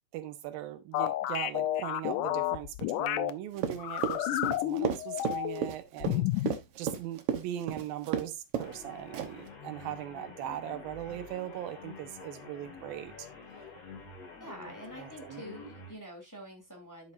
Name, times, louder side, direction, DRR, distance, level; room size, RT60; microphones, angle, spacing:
voice 1, 0.1-13.3 15.0-15.4, right 12 dB, 85° right, 2.8 m, -40 dB
sound 1, 0.9-3.3 3.8-5.7 6.0-6.6, left 14 dB, 75° left, 2.0 m, -31 dB
Run, 3.6-8.3 8.5-8.8 9.1-9.5, right 8 dB, 65° right, 1.5 m, -32 dB
sound 2, 8.5-16.0, left 4 dB, 45° left, 3.9 m, -48 dB
voice 2, 14.4-17.1, equal, 5° left, 2.7 m, -46 dB
10.5 x 7.4 x 2.6 m
omnidirectional pair, 4.1 m